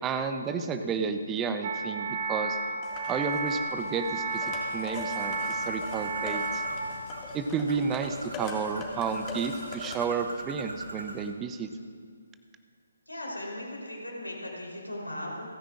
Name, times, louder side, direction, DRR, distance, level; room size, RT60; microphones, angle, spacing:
voice 1, 0.0-2.6 3.1-6.6 7.3-11.7, right 5 dB, 15° right, 8 dB, 0.6 m, -31 dB
sound 1, 1.6-6.8, right 3 dB, 35° right, 1.3 m, -32 dB
sound 2, 2.8-10.0, left 3 dB, 20° left, 2.2 m, -42 dB
Bird, 5.2-11.3, right 2 dB, 70° right, 1.5 m, -42 dB
voice 2, 13.1-15.5, left 1 dB, 90° left, -3 dB, 3.8 m, -38 dB
29.0 x 10.0 x 2.5 m, 2.1 s
figure-of-eight pair, 140°, 0 cm